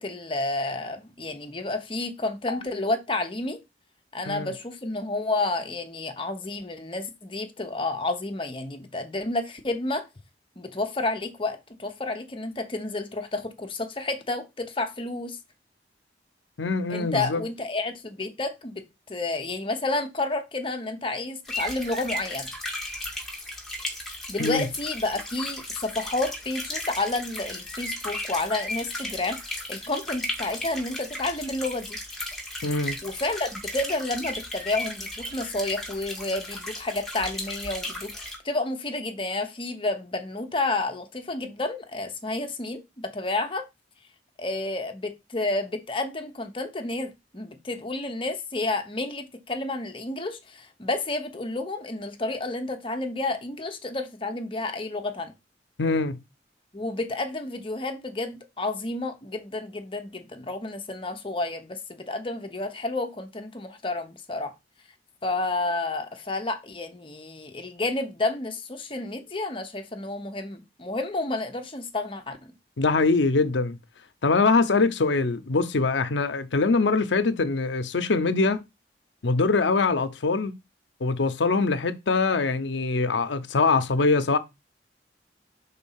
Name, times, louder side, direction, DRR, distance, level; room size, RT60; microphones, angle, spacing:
voice 1, 0.0-3.6 4.1-10.1 10.6-15.4 16.9-22.5 24.3-32.0 33.0-43.6 44.4-55.3 56.7-64.5 65.2-72.4, left 2 dB, 30° left, 0.9 m, -30 dB
voice 2, 16.6-17.4 24.4-24.7 32.6-33.0 55.8-56.2 72.8-73.8 74.2-78.6 79.2-80.5 81.0-84.4, left 3 dB, 90° left, 0.7 m, -23 dB
sound 1, 21.5-38.4, left 1 dB, ahead, 1.8 m, -35 dB
5.3 x 3.9 x 5.6 m
head